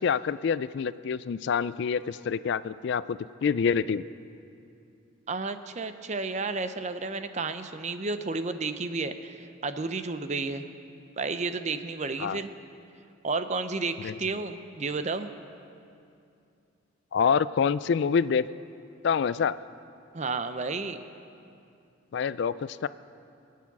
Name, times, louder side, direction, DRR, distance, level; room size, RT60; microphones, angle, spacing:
voice 1, 0.0-4.0 12.2-12.4 14.0-14.1 17.1-18.5 19.0-19.6 22.1-22.9, left 6 dB, 60° left, 16 dB, 0.3 m, -26 dB
voice 2, 5.3-10.6 11.2-12.5 13.2-15.3 20.1-21.0, right 3 dB, 35° right, 10 dB, 0.6 m, -32 dB
23.5 x 8.5 x 6.0 m, 2.5 s
head